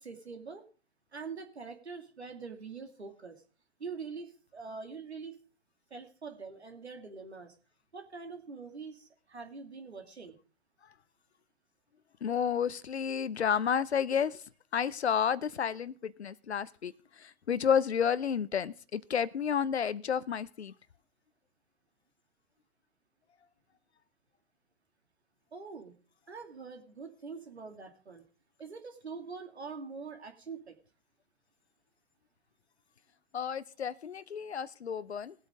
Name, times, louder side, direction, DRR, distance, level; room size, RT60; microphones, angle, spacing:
voice 1, 0.0-0.6 1.1-3.4 3.8-5.4 5.9-7.5 7.9-10.4 25.5-25.9 26.3-28.2 28.6-30.8, right 5 dB, 80° right, 2.5 m, -44 dB
voice 2, 12.2-14.4 14.7-16.9 17.5-20.7 33.3-35.3, left 7 dB, 85° left, 0.6 m, -31 dB
19.0 x 8.3 x 3.6 m
figure-of-eight pair, 120°, 32 cm